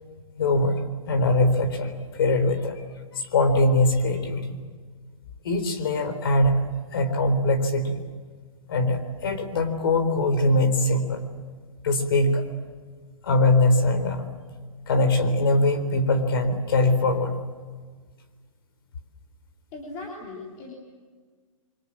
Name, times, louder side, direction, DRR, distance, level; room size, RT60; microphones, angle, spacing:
voice 1, 0.4-0.8 1.1-2.8 3.1-4.4 5.4-6.6 6.9-8.0 8.7-11.2 11.8-12.4 13.2-14.3 14.9-17.3, left 2 dB, 40° left, 8 dB, 3.9 m, -22 dB
voice 2, 19.7-20.7, left 3 dB, 20° left, -3 dB, 3.5 m, -38 dB
29.0 x 24.5 x 7.6 m, 1.5 s
hypercardioid pair, 175°, 18 cm